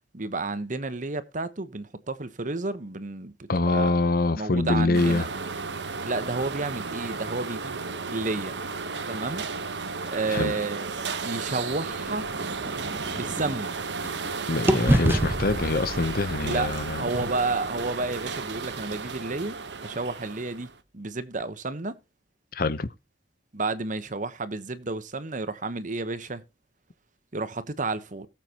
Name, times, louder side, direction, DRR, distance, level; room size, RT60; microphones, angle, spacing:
voice 1, 0.1-4.0 4.3-5.3 6.0-7.8 8.1-8.6 9.1-9.5 10.1-12.3 13.1-13.7 16.4-16.7 17.0-19.6 19.8-22.0 23.5-26.4 27.3-28.3, right 3 dB, 45° right, 1.1 m, -31 dB
voice 2, 3.5-5.3 10.3-10.5 14.5-17.0 22.5-22.9, left 3 dB, 55° left, 0.8 m, -24 dB
sound 1, 4.9-20.8, right 4 dB, 85° right, 1.1 m, -34 dB
sound 2, 12.0-14.3 14.7-18.6, right 1 dB, 15° right, 0.5 m, -29 dB
18.5 x 7.5 x 3.0 m
head